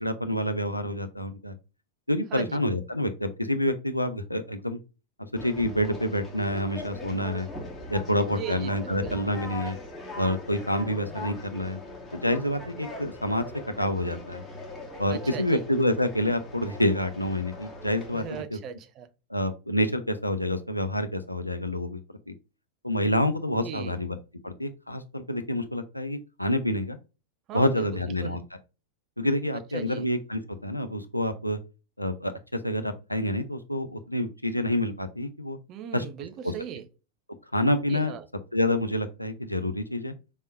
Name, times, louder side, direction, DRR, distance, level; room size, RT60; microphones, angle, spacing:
voice 1, 0.0-1.5 2.1-4.8 5.3-7.5 7.9-9.8 10.2-11.8 12.1-13.4 13.8-14.4 15.0-18.6 19.3-22.0 22.3-22.4 22.8-24.2 24.4-27.0 27.5-28.4 29.2-31.6 32.0-35.6 35.9-36.0 36.4-36.5 37.5-38.1 38.5-40.1, left 1 dB, 85° left, 0.6 m, -27 dB
Conversation, 5.4-18.4, left 2 dB, 15° left, 1.9 m, -41 dB
voice 2, 8.3-9.2 15.1-15.7 18.1-19.1 23.6-24.0 27.5-28.4 29.5-30.1 35.7-36.9 37.9-38.3, right 9 dB, 35° right, 0.6 m, -38 dB
5.1 x 3.7 x 2.5 m
figure-of-eight pair, 90°, 0 cm